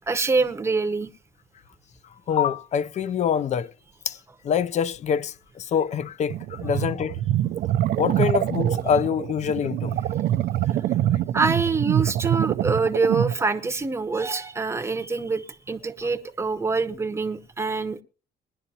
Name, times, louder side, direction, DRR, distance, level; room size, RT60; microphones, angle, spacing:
voice 1, 0.1-1.1 11.3-18.0, right 4 dB, 15° right, 0.8 m, -25 dB
voice 2, 2.3-3.7 4.1-4.2 4.4-7.2 8.0-10.0, left 7 dB, 40° left, 0.5 m, -25 dB
sound 1, 6.3-13.4, right 12 dB, 60° right, 0.6 m, -25 dB
20.5 x 11.0 x 2.8 m
cardioid pair, 125°, 17 cm